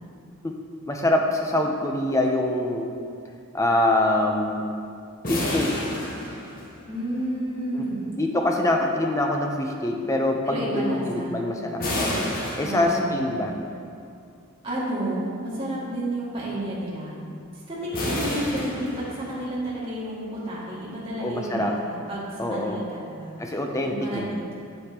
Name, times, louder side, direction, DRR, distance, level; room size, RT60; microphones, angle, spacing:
voice 1, 0.9-2.9 3.5-4.7 5.3-5.8 7.7-7.8 8.2-12.3 12.6-13.5 21.2-21.8 22.4-22.8 23.4-24.3, left 1 dB, 15° left, 2 dB, 0.5 m, -24 dB
sound 1, 5.2-7.1 11.8-13.4 17.9-19.6, left 1 dB, 40° left, 1.0 m, -30 dB
voice 2, 6.9-8.1 10.5-11.5 12.6-13.2 14.6-17.2 17.7-23.3 23.8-24.6, right 1 dB, 25° right, -8 dB, 2.0 m, -31 dB
8.6 x 7.9 x 2.9 m, 2.4 s
head